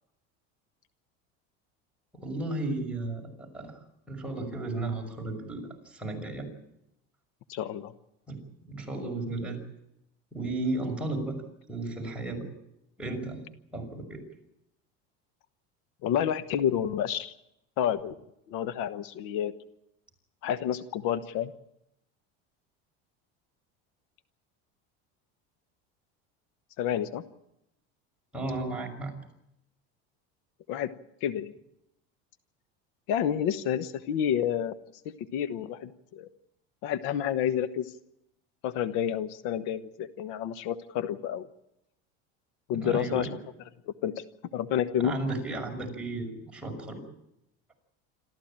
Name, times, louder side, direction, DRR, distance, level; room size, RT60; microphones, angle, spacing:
voice 1, 2.1-3.8 4.1-6.5 8.3-8.4 8.7-9.6 10.3-11.4 11.7-12.5 13.0-13.4 13.7-14.2 28.3-29.1 42.7-43.3 45.0-47.0, right 2 dB, 5° right, -1 dB, 5.9 m, -34 dB
voice 2, 7.5-7.9 16.0-17.3 17.8-18.2 18.5-19.5 20.4-21.5 26.8-27.2 30.7-30.9 31.2-31.5 33.1-34.7 35.0-36.3 36.8-37.9 38.6-41.5 42.7-43.3 44.0-44.2 44.5-45.1, left 9 dB, 70° left, 12 dB, 1.2 m, -29 dB
26.5 x 14.0 x 8.9 m, 0.84 s
supercardioid pair, 125°, 32 cm